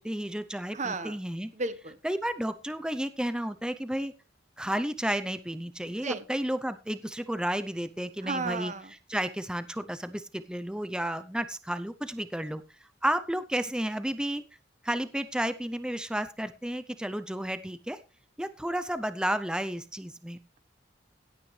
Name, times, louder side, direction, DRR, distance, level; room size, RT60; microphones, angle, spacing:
voice 1, 0.0-1.5 2.0-4.1 4.6-12.6 13.0-14.4 14.8-18.0 18.4-20.4, right 1 dB, 5° right, 11 dB, 0.6 m, -32 dB
voice 2, 0.7-1.1 1.5-2.0 6.0-6.2 8.2-8.9, right 3 dB, 40° right, 12 dB, 1.2 m, -33 dB
17.0 x 8.9 x 3.2 m, 0.31 s
head